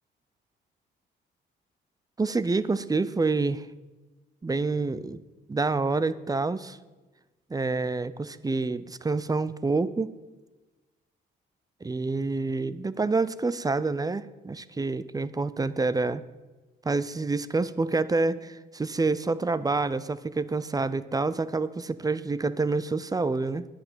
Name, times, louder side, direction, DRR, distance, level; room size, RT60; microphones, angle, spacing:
voice 1, 2.2-3.6 4.4-5.2 5.5-6.8 7.5-10.1 11.8-16.2 16.8-23.7, right 3 dB, 20° right, 17 dB, 0.6 m, -27 dB
10.5 x 8.9 x 7.6 m, 1.2 s
cardioid pair, 90°, 20 cm